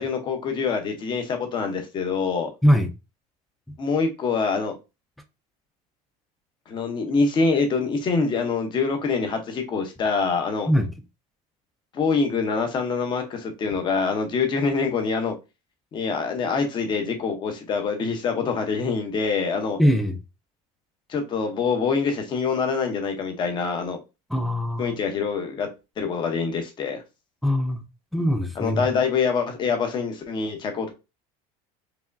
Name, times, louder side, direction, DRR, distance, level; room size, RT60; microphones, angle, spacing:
voice 1, 0.0-2.5 3.8-4.8 6.7-10.7 11.9-15.3 15.9-19.8 21.1-24.0 24.8-25.7 26.0-27.0 28.6-30.9, left 5 dB, 25° left, 0.8 m, -25 dB
voice 2, 19.8-20.2 24.3-25.0 27.4-27.8 28.1-28.9, equal, ahead, 0.4 m, -21 dB
4.7 x 3.0 x 2.6 m
cardioid pair, 160°, 17 cm